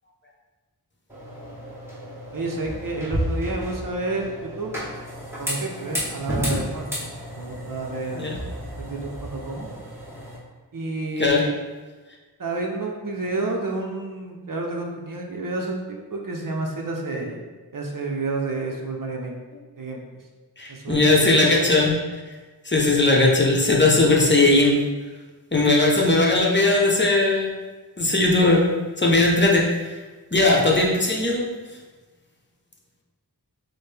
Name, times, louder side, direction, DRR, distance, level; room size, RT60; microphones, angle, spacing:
sound 1, 1.1-10.4, equal, 5° right, 1.5 m, -32 dB
voice 1, 2.3-4.7 5.4-8.3 8.8-9.7 10.7-11.5 12.4-17.4 17.7-19.3 19.8-20.0 20.7-21.2, right 2 dB, 55° right, 0 dB, 0.7 m, -30 dB
voice 2, 20.6-22.0 22.6-24.8 25.5-27.5 28.0-28.7 29.0-29.9 30.3-31.5, left 2 dB, 30° left, -2 dB, 0.8 m, -18 dB
6.2 x 2.1 x 3.3 m, 1.3 s
wide cardioid pair, 45°, 39 cm